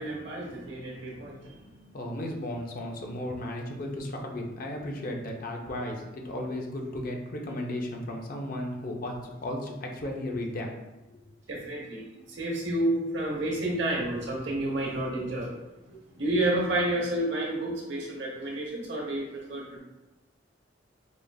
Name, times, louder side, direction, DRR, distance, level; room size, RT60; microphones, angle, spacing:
voice 1, 0.0-1.5 11.5-12.1 12.4-15.5 16.1-19.8, right 1 dB, 75° right, -2 dB, 0.9 m, -30 dB
voice 2, 1.9-10.8, left 1 dB, 50° left, 1 dB, 0.6 m, -35 dB
4.9 x 2.4 x 2.3 m, 1.1 s
head